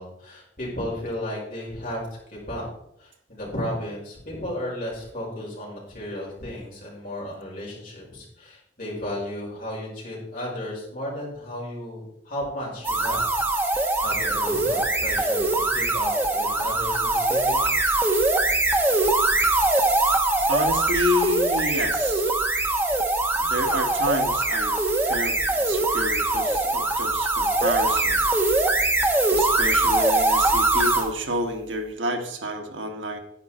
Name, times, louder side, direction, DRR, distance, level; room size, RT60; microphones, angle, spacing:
voice 1, 0.0-2.0 2.3-2.7 3.0-13.2 13.7-17.6, left 1 dB, 45° left, -5 dB, 5.3 m, -34 dB
sound 1, 12.8-31.1, right 2 dB, 10° right, 1.0 m, -22 dB
voice 2, 20.5-22.3 23.5-24.7 25.1-28.2 29.3-33.2, equal, 80° right, 5 dB, 1.5 m, -29 dB
10.0 x 9.6 x 4.4 m, 0.75 s
head